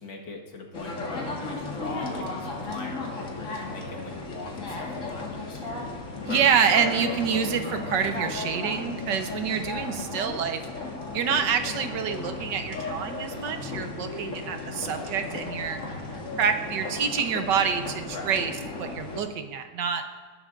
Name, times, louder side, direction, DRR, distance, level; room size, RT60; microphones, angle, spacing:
voice 1, 0.0-6.0 18.1-18.4, left 2 dB, 80° left, 0 dB, 2.3 m, -40 dB
sound 1, 0.7-19.2, left 3 dB, 45° left, 2.0 m, -35 dB
voice 2, 6.2-10.6 11.1-15.8 16.4-18.5 18.8-20.0, right 7 dB, 80° right, 7 dB, 1.6 m, -27 dB
19.5 x 11.5 x 2.6 m, 1.5 s
omnidirectional pair, 1.9 m